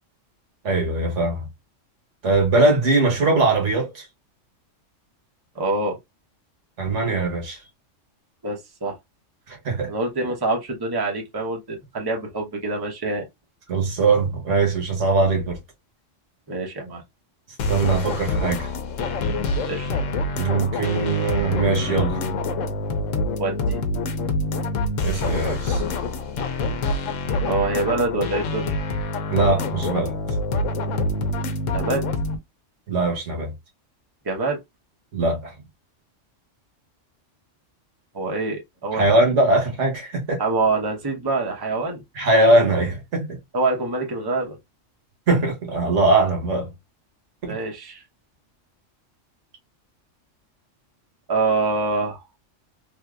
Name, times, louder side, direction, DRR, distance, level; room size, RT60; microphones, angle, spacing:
voice 1, 0.6-1.4 2.2-4.1 6.8-7.6 9.5-9.9 13.7-15.6 17.7-18.7 20.3-22.2 25.0-25.8 29.3-30.1 32.9-33.5 35.1-35.5 38.9-40.4 42.1-43.4 45.3-46.7 47.4-47.5, right 2 dB, 70° right, 1.4 m, -21 dB
voice 2, 5.5-6.0 8.4-9.0 9.9-13.2 16.5-17.0 19.6-19.9 23.4-23.8 27.4-28.7 31.7-32.0 34.2-34.6 38.1-39.1 40.4-42.0 43.5-44.6 47.4-48.0 51.3-52.2, right 3 dB, 20° right, 0.8 m, -25 dB
sound 1, 17.6-32.4, left 2 dB, 90° left, 1.1 m, -26 dB
3.3 x 2.8 x 2.4 m
omnidirectional pair, 1.3 m